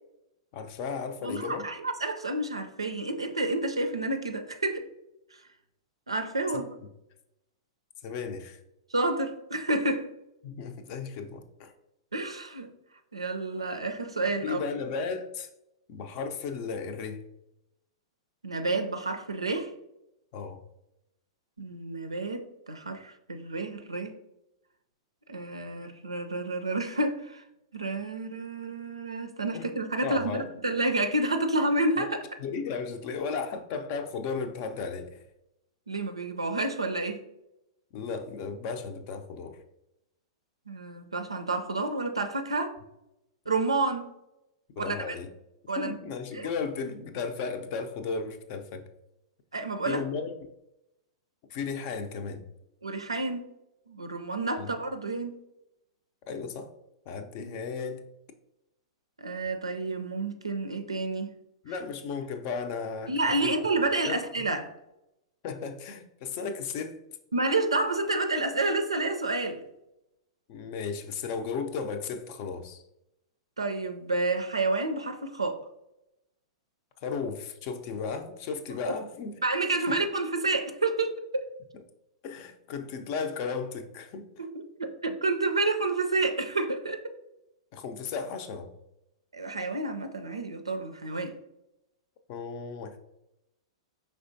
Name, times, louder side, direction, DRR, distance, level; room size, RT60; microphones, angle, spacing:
voice 1, 0.5-1.7 6.5-6.6 8.0-8.6 10.4-11.7 14.4-15.5 15.9-17.3 20.3-20.6 29.5-29.7 30.0-30.5 32.0-32.1 32.4-35.2 37.9-39.6 44.8-45.3 45.8-48.9 49.9-50.3 51.5-52.4 54.6-54.7 56.3-56.7 57.1-58.0 61.6-63.6 64.1-64.2 65.4-67.1 70.5-72.8 77.0-79.4 82.2-84.4 87.7-88.7 92.3-93.0, left 5 dB, 45° left, 0.5 m, -35 dB
voice 2, 1.2-4.8 6.1-6.7 8.9-10.1 12.1-12.7 13.1-14.6 18.4-19.7 21.6-24.2 25.3-27.4 27.7-32.2 35.9-37.3 40.7-42.7 43.5-44.1 44.8-45.2 45.7-45.9 46.3-46.5 49.5-50.0 52.8-53.5 53.9-55.4 57.4-57.6 59.2-61.3 63.1-64.7 67.3-69.6 73.6-75.6 79.4-81.5 84.4-84.5 84.8-87.0 89.3-91.4, right 2 dB, 90° right, 0.4 m, -29 dB
4.9 x 3.4 x 2.6 m
figure-of-eight pair, 105°, 3 cm